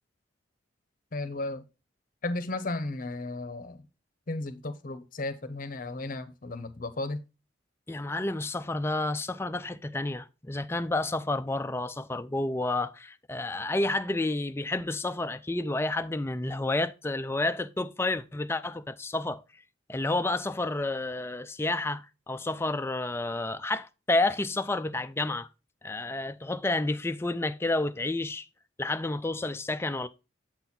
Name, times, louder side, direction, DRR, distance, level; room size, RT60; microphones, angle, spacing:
voice 1, 1.1-1.6 2.2-3.9 4.3-7.2, left 2 dB, 45° left, 0.8 m, -34 dB
voice 2, 7.9-19.4 19.9-25.5 25.8-28.4 28.8-30.1, left 2 dB, 15° left, 0.4 m, -30 dB
7.8 x 4.1 x 4.2 m
head